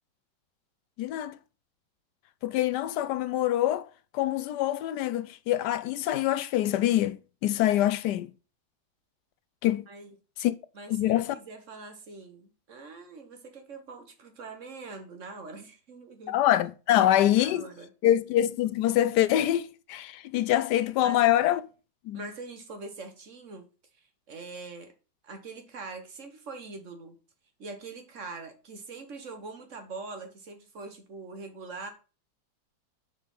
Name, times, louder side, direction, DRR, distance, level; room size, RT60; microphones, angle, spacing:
voice 1, 1.0-1.4 2.4-3.9 4.1-8.3 9.6-9.9 10.4-10.5 10.9-11.3 16.3-17.6 18.0-21.6 22.1-22.2, left 13 dB, 70° left, 1.0 m, -25 dB
voice 2, 10.7-16.3 16.9-17.9 21.0-21.3 22.1-23.7 23.9-24.9 25.2-27.2 27.6-31.9, right 3 dB, 40° right, 1.4 m, -43 dB
6.8 x 5.0 x 5.4 m
omnidirectional pair, 2.2 m